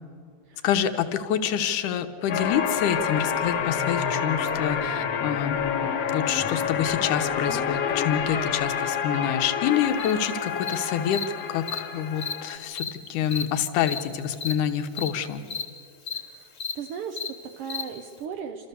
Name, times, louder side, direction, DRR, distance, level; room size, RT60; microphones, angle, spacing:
voice 1, 0.6-5.7 6.1-15.4, left 9 dB, 80° left, 8 dB, 2.4 m, -27 dB
sound 1, 2.3-12.6, left 7 dB, 65° left, 1.8 m, -28 dB
Cricket, 10.0-10.1 10.6-10.7 11.1-11.2 11.7-11.8 12.2-12.3 12.8-12.9 13.3-13.4 13.9-14.0 14.4-14.5 15.0-15.1 15.5-15.6 16.1-16.2 16.6-16.7 17.2-17.3 17.7-17.8, left 5 dB, 35° left, 1.3 m, -32 dB
voice 2, 16.1-16.5 16.7-18.7, right 7 dB, 75° right, 4 dB, 1.4 m, -37 dB
28.5 x 13.5 x 6.9 m, 2.4 s
omnidirectional pair, 3.6 m